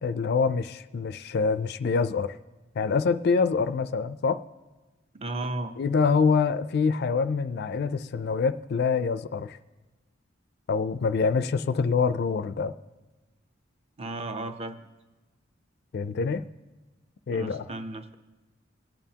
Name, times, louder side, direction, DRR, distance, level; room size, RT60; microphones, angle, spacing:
voice 1, 0.0-2.4 2.8-4.4 5.8-9.6 10.7-12.7 15.9-16.4 17.3-17.6, left 5 dB, 55° left, 13 dB, 0.4 m, -25 dB
voice 2, 5.1-5.7 14.0-14.8 17.3-18.2, right 2 dB, 30° right, 7 dB, 0.7 m, -34 dB
26.5 x 9.0 x 2.8 m, 1.2 s
head